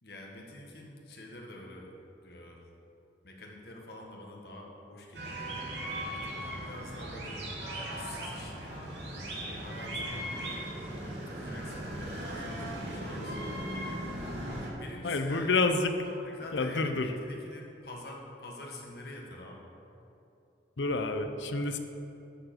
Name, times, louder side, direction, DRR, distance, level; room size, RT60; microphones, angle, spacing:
voice 1, 0.0-1.9 2.2-2.7 3.2-5.4 6.0-7.5 7.9-8.9 9.3-10.6 11.1-13.7 14.5-19.6, left 1 dB, 60° left, -1 dB, 1.7 m, -47 dB
sound 1, 5.1-14.7, right 1 dB, 75° right, 2.5 m, -38 dB
voice 2, 15.0-15.9 16.5-17.1 20.8-21.8, left 3 dB, 80° left, 7 dB, 0.7 m, -28 dB
11.5 x 4.9 x 7.7 m, 2.8 s
head